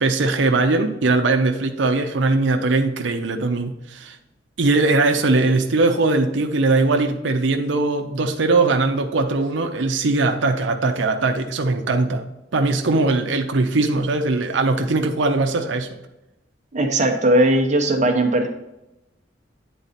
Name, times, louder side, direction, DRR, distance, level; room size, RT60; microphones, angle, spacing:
voice 1, 0.0-4.2 4.6-12.2 12.5-15.9, right 3 dB, 80° right, 4 dB, 0.7 m, -20 dB
voice 2, 16.7-18.5, right 1 dB, 40° right, 3 dB, 0.8 m, -18 dB
9.3 x 4.0 x 4.1 m, 0.93 s
head